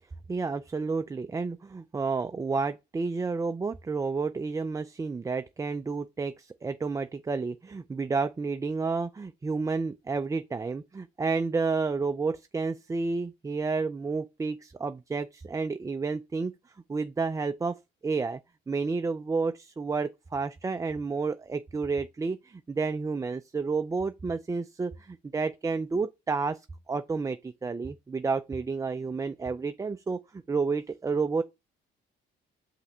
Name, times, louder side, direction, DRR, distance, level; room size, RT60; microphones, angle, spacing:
voice 1, 0.3-16.5 16.9-17.8 18.0-18.4 18.7-31.4, right 4 dB, 15° right, 0.3 m, -30 dB
5.5 x 3.3 x 5.3 m
cardioid pair, 90°, 20 cm